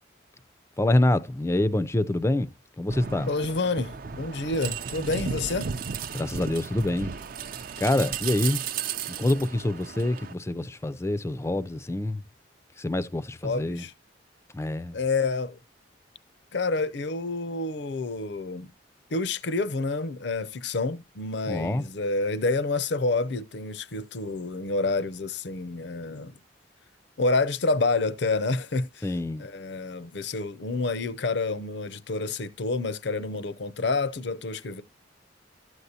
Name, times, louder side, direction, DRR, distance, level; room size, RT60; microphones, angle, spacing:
voice 1, 0.8-2.5 2.8-3.3 6.1-7.1 7.8-8.6 9.1-12.2 12.8-13.8 14.5-15.0 21.5-21.8 29.0-29.4, left 1 dB, 15° left, 0.4 m, -26 dB
sound 1, 2.9-10.3, right 6 dB, 45° right, 0.5 m, -35 dB
voice 2, 3.3-5.7 13.4-13.9 14.9-15.6 16.5-18.7 19.1-26.3 27.2-29.1 29.4-34.8, left 3 dB, 60° left, 0.6 m, -28 dB
12.5 x 8.0 x 2.8 m
head